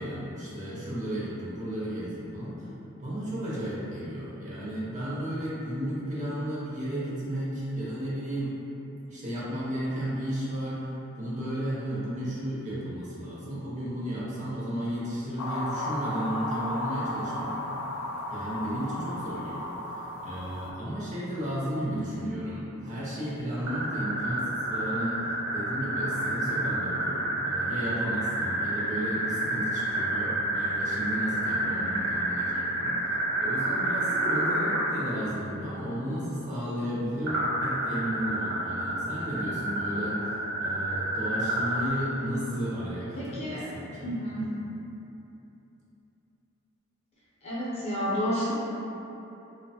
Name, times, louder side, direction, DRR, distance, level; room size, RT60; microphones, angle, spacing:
voice 1, 0.0-2.7 3.0-8.5 9.1-17.6 18.3-44.5, equal, 35° right, -8 dB, 0.6 m, -34 dB
sound 1, 15.4-20.7, left 1 dB, 85° left, 0.3 m, -34 dB
voice 2, 21.9-22.3 31.5-31.9 43.2-43.7 44.0-44.5 47.4-48.5, equal, 30° left, -9 dB, 0.6 m, -31 dB
sound 2, 23.7-34.8 37.3-41.9, right 2 dB, 70° right, 0.9 m, -29 dB
2.6 x 2.1 x 2.7 m, 3.0 s
head